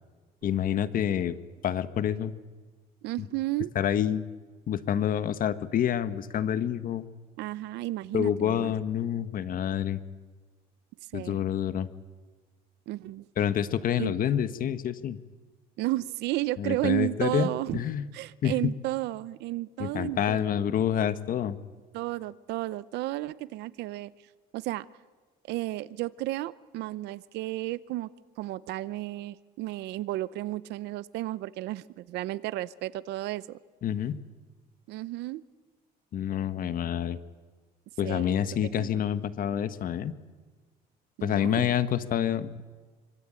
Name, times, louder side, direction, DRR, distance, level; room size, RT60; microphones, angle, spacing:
voice 1, 0.4-1.3 1.6-2.3 3.7-4.3 4.7-7.0 8.1-10.0 11.1-11.9 13.4-15.2 16.6-18.1 18.4-18.7 19.8-21.6 33.8-34.2 36.1-37.2 38.0-40.1 41.2-42.6, left 9 dB, 55° left, 12 dB, 1.5 m, -28 dB
voice 2, 3.0-3.7 7.4-8.7 11.1-11.4 12.9-13.3 14.0-14.1 15.8-17.8 18.1-20.5 21.9-24.1 24.5-24.9 25.5-28.1 28.4-33.6 34.9-35.4 38.0-38.4 38.8-39.0 41.2-41.7, right 16 dB, 85° right, 17 dB, 0.8 m, -33 dB
25.0 x 25.0 x 9.0 m, 1.4 s
cardioid pair, 110°, 17 cm